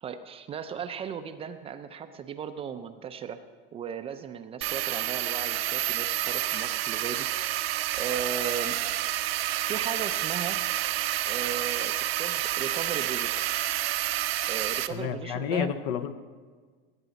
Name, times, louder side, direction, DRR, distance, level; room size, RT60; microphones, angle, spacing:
voice 1, 0.0-3.4 3.7-7.3 7.9-8.8 9.7-10.6 11.2-13.4 14.5-15.7, right 7 dB, 20° right, 9 dB, 0.4 m, -36 dB
sound 1, 4.6-14.9, right 14 dB, 85° right, 0.6 m, -29 dB
voice 2, 14.9-16.1, left 8 dB, 65° left, 12 dB, 0.8 m, -30 dB
16.5 x 8.1 x 4.0 m, 1.5 s
supercardioid pair, 130°, 30 cm